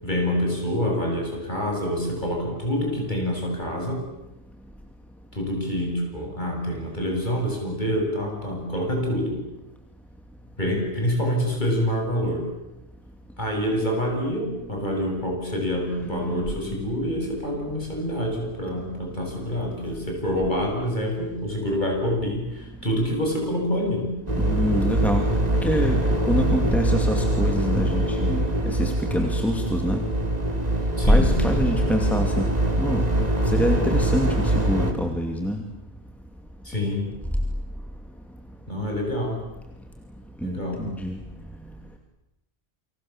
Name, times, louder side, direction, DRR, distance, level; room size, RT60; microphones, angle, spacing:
voice 1, 0.0-4.0 5.3-9.4 10.6-12.5 13.4-24.1 31.0-31.3 36.6-37.1 38.7-39.4 40.4-40.8, equal, 45° left, 0 dB, 8.3 m, -26 dB
voice 2, 16.0-16.9 24.4-25.3 25.6-26.0 26.2-30.0 31.1-32.4 32.8-33.0 33.4-35.6 40.4-41.2, equal, ahead, 3 dB, 2.6 m, -25 dB
sound 1, 24.3-34.9, right 1 dB, 40° right, 3.0 m, -23 dB
29.0 x 26.0 x 7.4 m, 0.89 s
omnidirectional pair, 1.1 m